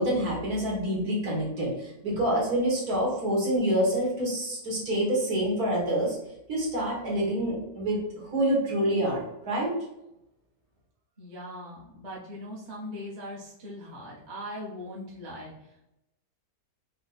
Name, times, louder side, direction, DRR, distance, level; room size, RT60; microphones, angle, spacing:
voice 1, 0.0-6.2 6.5-9.8, right 1 dB, 65° right, -4 dB, 1.9 m, -27 dB
voice 2, 11.2-15.9, left 1 dB, 30° right, -5 dB, 1.0 m, -40 dB
4.4 x 2.4 x 4.0 m, 0.87 s
omnidirectional pair, 1.8 m